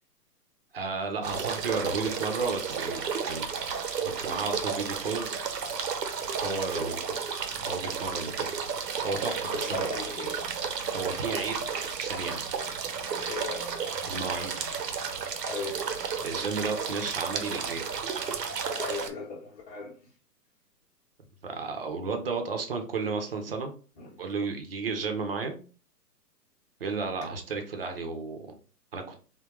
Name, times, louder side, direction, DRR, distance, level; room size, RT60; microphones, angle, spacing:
voice 1, 0.7-3.5 4.0-5.3 6.4-7.1 7.6-8.5 9.0-9.9 10.8-11.7 12.0-12.4 14.0-14.8 16.2-17.8 21.4-23.7 24.2-25.6 26.8-28.5 28.9-29.1, right 4 dB, 40° right, 0.5 m, -33 dB
sound 1, 1.2-19.1, right 6 dB, 80° right, 0.7 m, -33 dB
voice 2, 9.2-10.4 13.3-13.7 15.5-15.8 18.7-19.9 24.0-24.1, left 4 dB, 25° left, 0.8 m, -37 dB
3.6 x 2.2 x 2.8 m
figure-of-eight pair, 130°, 49 cm